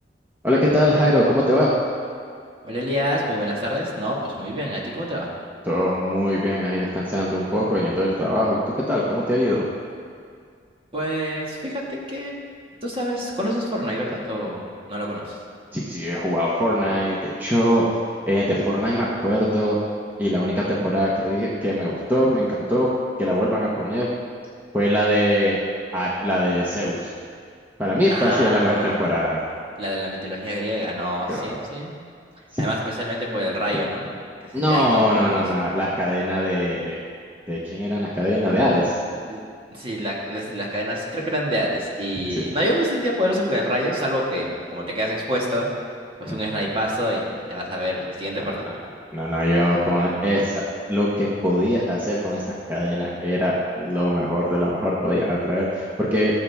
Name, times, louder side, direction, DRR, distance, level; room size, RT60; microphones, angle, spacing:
voice 1, 0.4-1.7 5.7-8.6 8.9-9.6 15.7-17.8 18.3-19.8 20.2-22.9 23.2-24.1 24.7-25.6 25.9-27.1 27.8-29.4 31.3-31.5 32.5-32.6 34.5-37.0 37.5-38.9 42.3-42.5 46.2-46.4 49.1-52.4 52.7-56.4, equal, 10° right, -6 dB, 1.2 m, -22 dB
voice 2, 2.6-5.3 10.9-11.8 12.1-12.3 12.8-15.4 28.1-29.1 29.8-31.9 32.6-34.1 34.4-35.4 39.3-39.4 39.7-45.7 46.2-48.7, equal, 30° right, -3 dB, 1.9 m, -26 dB
17.0 x 7.6 x 3.6 m, 2.2 s
head